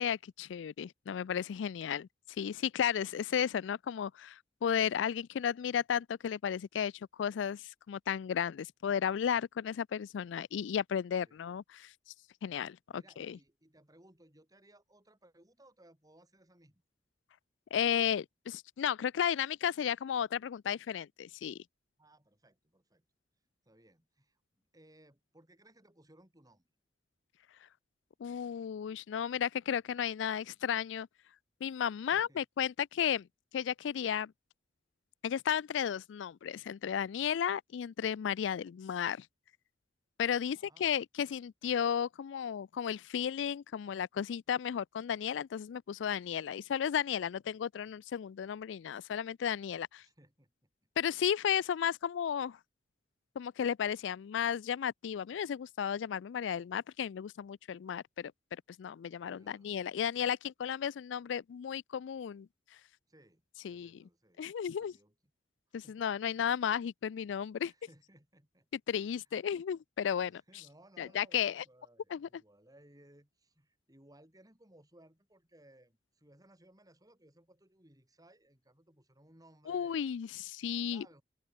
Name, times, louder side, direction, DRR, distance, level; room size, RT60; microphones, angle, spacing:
voice 1, 0.0-2.1 2.4-6.9 7.2-11.9 12.4-13.4 17.7-21.6 28.2-31.1 31.6-33.3 33.5-34.3 35.2-39.3 40.2-50.0 51.0-52.6 53.4-58.3 58.8-62.5 63.6-64.0 64.4-64.9 65.7-67.7 68.9-70.4 71.0-71.6 72.1-72.3 79.7-81.0, left 8 dB, 85° left, 0.4 m, -34 dB
voice 2, 12.5-16.8 22.0-23.1 23.7-24.4 24.7-26.7 32.1-32.4 40.5-40.9 50.0-50.7 59.2-59.7 63.1-63.4 63.7-64.4 64.7-65.1 65.8-66.0 66.4-66.5 67.6-68.7 69.1-69.2 70.3-80.0 80.8-81.2, right 1 dB, 20° right, 5.8 m, -62 dB
open air
head